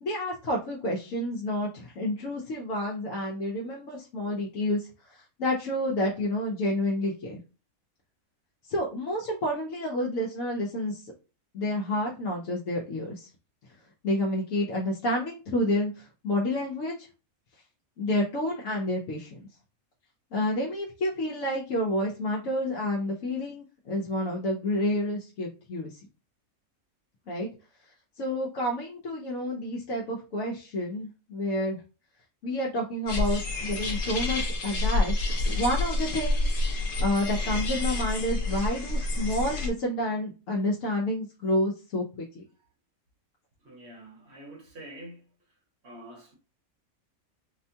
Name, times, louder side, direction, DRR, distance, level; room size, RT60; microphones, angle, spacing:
voice 1, 0.0-7.4 8.7-11.1 11.5-13.3 14.0-16.9 18.0-19.5 20.3-26.0 27.3-27.5 28.2-31.8 32.4-42.4, left 1 dB, 70° left, 1.1 m, -29 dB
sound 1, 33.1-39.7, left 2 dB, 50° left, 0.7 m, -28 dB
voice 2, 43.6-45.3 45.8-46.3, right 1 dB, 50° right, 1.2 m, -46 dB
4.3 x 2.2 x 2.7 m
omnidirectional pair, 1.5 m